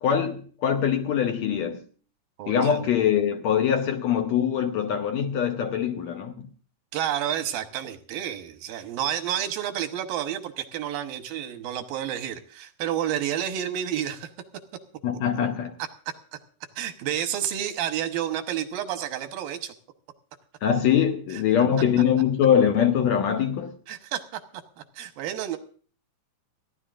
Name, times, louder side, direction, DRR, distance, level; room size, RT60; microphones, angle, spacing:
voice 1, 0.0-1.8 2.5-6.5 15.0-15.7 20.6-23.8, left 8 dB, 65° left, 1.9 m, -23 dB
voice 2, 2.4-2.9 6.9-14.3 16.8-19.7 23.9-24.4 24.8-25.6, right 10 dB, 90° right, 2.9 m, -30 dB
29.5 x 11.0 x 2.5 m
omnidirectional pair, 4.0 m